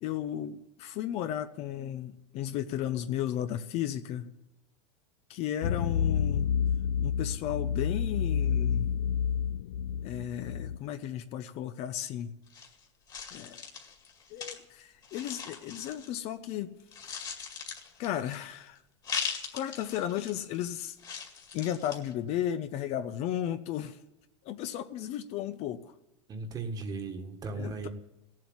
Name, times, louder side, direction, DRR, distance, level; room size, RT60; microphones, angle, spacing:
voice 1, 0.0-4.3 5.3-6.5 7.0-8.9 10.0-12.3 13.3-13.6 14.3-16.7 17.1-17.2 18.0-18.8 19.5-21.0 21.5-24.0 24.4-25.8 27.6-27.9, left 11 dB, 45° left, 10 dB, 0.8 m, -34 dB
sound 1, 5.6-10.8, left 7 dB, 80° left, 0.6 m, -29 dB
sound 2, 12.5-16.5 16.8-18.6 19.0-20.6 21.0-22.1, left 6 dB, 25° left, 2.1 m, -40 dB
voice 2, 26.3-27.9, right 3 dB, 25° right, 7 dB, 1.7 m, -36 dB
16.5 x 7.6 x 9.6 m, 0.93 s
supercardioid pair, 130°, 15 cm